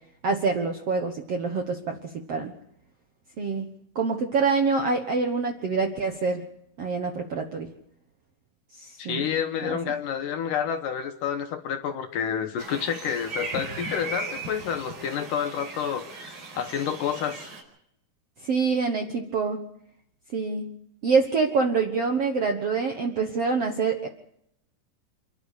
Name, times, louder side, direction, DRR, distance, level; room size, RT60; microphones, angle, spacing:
voice 1, 0.2-2.0 2.3-2.5 3.4-3.7 3.9-6.4 6.8-7.7 8.8-9.3 9.6-9.9 18.4-19.6 20.3-20.7 21.0-24.1, right 4 dB, 60° right, 4 dB, 1.6 m, -26 dB
voice 2, 9.0-17.5, left 8 dB, 70° left, 7 dB, 2.2 m, -29 dB
sound 1, 12.6-17.6, right 3 dB, 80° right, 6.6 m, -37 dB
28.5 x 11.5 x 8.4 m, 0.74 s
omnidirectional pair, 4.6 m